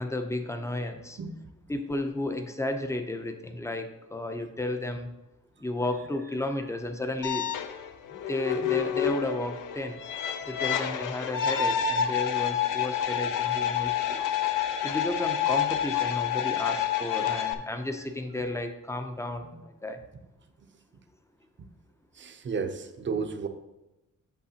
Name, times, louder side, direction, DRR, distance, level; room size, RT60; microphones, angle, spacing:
voice 1, 0.0-1.2 1.7-5.1 5.6-7.5 8.1-10.0 10.5-14.2 14.8-20.0, left 1 dB, 10° left, 7 dB, 0.5 m, -33 dB
sound 1, 7.2-17.5, left 9 dB, 80° left, 0.6 m, -28 dB
voice 2, 22.1-23.5, right 5 dB, 40° right, 7 dB, 0.6 m, -34 dB
8.4 x 6.8 x 2.8 m, 0.98 s
wide cardioid pair, 165°, 31 cm